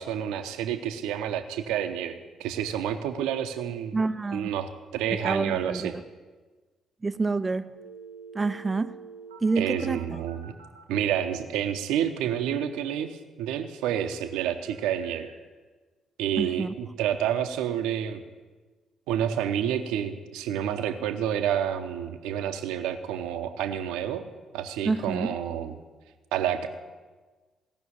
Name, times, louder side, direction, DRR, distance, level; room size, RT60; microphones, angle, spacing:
voice 1, 0.0-3.9 4.3-5.9 9.6-10.6 10.9-15.3 16.2-18.2 19.1-24.2 24.5-25.8 26.3-26.7, right 9 dB, 70° right, 8 dB, 0.8 m, -29 dB
voice 2, 3.9-4.5 5.2-6.0 7.0-7.7 8.3-9.0 9.4-10.2 16.4-16.7 24.8-25.4, right 3 dB, 25° right, 12 dB, 0.5 m, -28 dB
sound 1, 7.7-10.8 14.6-15.4, right 5 dB, 90° right, 1.3 m, -47 dB
16.5 x 6.1 x 8.7 m, 1.3 s
figure-of-eight pair, 40°, 0 cm